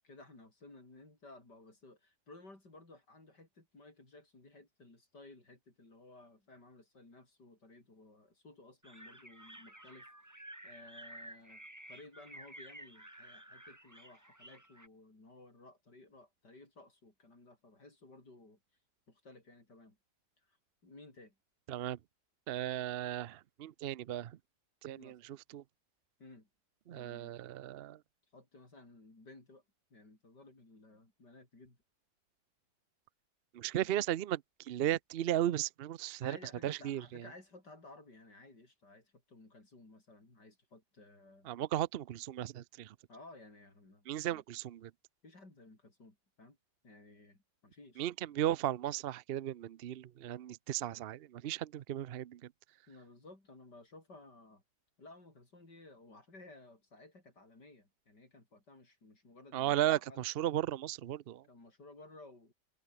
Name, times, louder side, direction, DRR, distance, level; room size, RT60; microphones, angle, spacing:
voice 1, 0.0-11.6 11.9-18.6 19.1-20.0 20.4-20.6 20.8-21.4 25.0-25.2 26.2-26.5 26.9-27.3 28.3-29.6 29.9-31.8 33.8-33.9 36.2-41.5 43.1-44.4 45.2-46.6 46.8-48.1 52.9-54.6 55.0-60.3 61.5-62.5, left 2 dB, 75° left, 7.0 m, -57 dB
sound 1, 8.8-14.9, right 1 dB, 10° right, 2.8 m, -52 dB
voice 2, 21.7-22.0 22.5-24.3 24.8-25.2 25.5-25.6 26.9-28.0 33.5-34.4 34.7-36.4 36.6-37.2 41.5-42.9 44.1-44.9 48.0-52.4 59.5-61.4, right 12 dB, 90° right, 0.5 m, -35 dB
open air
omnidirectional pair, 1.8 m